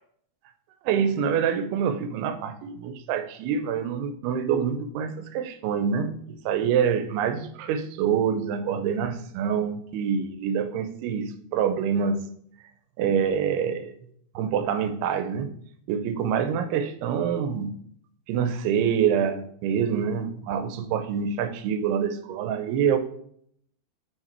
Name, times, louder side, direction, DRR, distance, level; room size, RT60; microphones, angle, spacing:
voice 1, 0.9-12.3 13.0-14.0 14.4-15.5 15.9-17.8 18.3-23.0, right 7 dB, 90° right, 11 dB, 2.6 m, -26 dB
6.4 x 4.9 x 4.3 m, 0.66 s
omnidirectional pair, 4.5 m